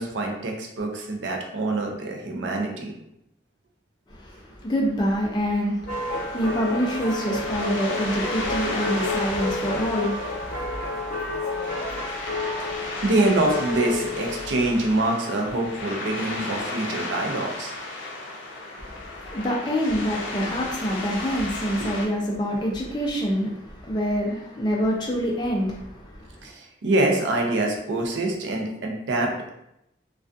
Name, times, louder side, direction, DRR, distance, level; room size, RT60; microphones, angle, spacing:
voice 1, 0.0-2.9 12.6-12.7 13.0-17.7 26.4-29.5, right 2 dB, 80° right, 1 dB, 0.5 m, -25 dB
voice 2, 4.1-11.0 18.7-26.5, equal, 25° left, -3 dB, 0.4 m, -27 dB
sound 1, 5.9-22.1, left 2 dB, 85° left, 0.4 m, -34 dB
sound 2, 5.9-15.0, left 2 dB, 45° left, 0.8 m, -30 dB
2.3 x 2.3 x 2.5 m, 0.81 s
head